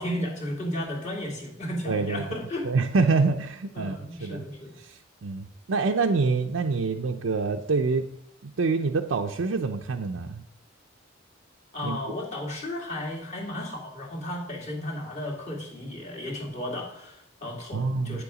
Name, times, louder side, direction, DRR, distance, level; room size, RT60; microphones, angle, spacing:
voice 1, 0.0-2.7 3.7-4.7 11.7-18.2, left 1 dB, 35° left, -2 dB, 2.3 m, -34 dB
voice 2, 1.9-2.3 2.6-4.4 4.8-8.0 8.4-10.4 11.8-12.0 17.7-18.2, right 4 dB, 85° right, 3 dB, 0.6 m, -26 dB
8.7 x 6.9 x 5.0 m, 0.71 s
head